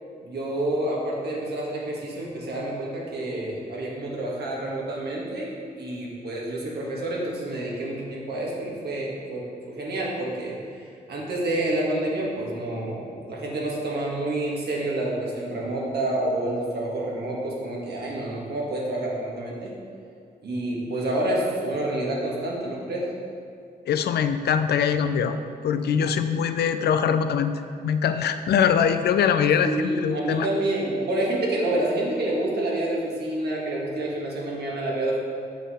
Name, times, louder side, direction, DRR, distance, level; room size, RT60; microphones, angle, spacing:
voice 1, 0.2-19.7 20.4-23.1 29.6-35.2, right 1 dB, 80° right, -3 dB, 1.6 m, -28 dB
voice 2, 23.9-25.4 25.6-27.5 27.8-30.5, left 7 dB, 80° left, 9 dB, 0.4 m, -22 dB
7.3 x 5.6 x 4.2 m, 2.4 s
cardioid pair, 65°, 17 cm